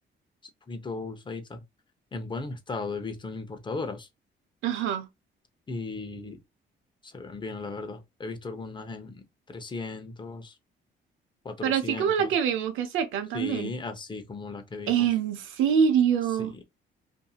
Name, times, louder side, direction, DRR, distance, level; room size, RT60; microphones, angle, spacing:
voice 1, 0.7-1.6 2.1-4.1 5.7-6.4 7.0-10.5 11.4-12.3 13.3-15.1 16.4-16.6, left 3 dB, 25° left, 0.7 m, -36 dB
voice 2, 4.6-5.1 11.6-13.7 14.9-16.5, right 8 dB, 85° right, 0.6 m, -25 dB
2.7 x 2.6 x 2.3 m
cardioid pair, 90°, 20 cm